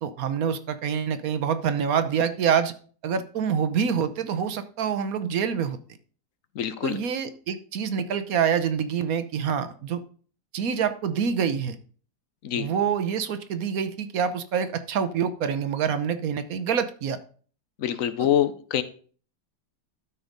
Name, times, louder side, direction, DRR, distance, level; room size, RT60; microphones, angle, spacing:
voice 1, 0.0-2.7 3.0-5.8 6.8-10.0 10.5-11.8 12.5-17.2 18.2-18.3, right 7 dB, 60° right, 12 dB, 1.1 m, -26 dB
voice 2, 6.6-7.0 12.4-12.7 17.8-18.8, left 10 dB, 60° left, 12 dB, 1.0 m, -25 dB
12.5 x 4.5 x 5.2 m, 0.43 s
omnidirectional pair, 1.9 m